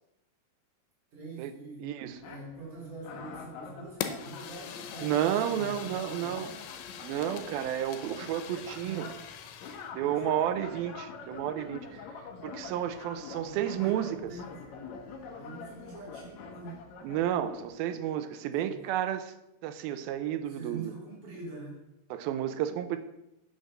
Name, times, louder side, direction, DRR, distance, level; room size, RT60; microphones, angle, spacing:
voice 1, 1.1-1.9 2.2-6.6 8.8-9.3 10.0-10.4 12.8-14.6 15.3-16.9 18.5-18.8 20.5-21.9, right 3 dB, 50° right, -4 dB, 4.9 m, -45 dB
voice 2, 1.8-2.1 5.0-6.5 7.0-9.1 10.0-12.0 12.4-14.3 17.0-19.3 19.6-20.9 22.1-23.0, right 11 dB, 80° right, 9 dB, 2.5 m, -31 dB
sound 1, 2.1-17.7, left 5 dB, 65° left, 1.9 m, -46 dB
Fire, 4.0-9.9, left 9 dB, 85° left, 2.7 m, -42 dB
8.5 x 6.6 x 6.6 m, 0.90 s
omnidirectional pair, 4.4 m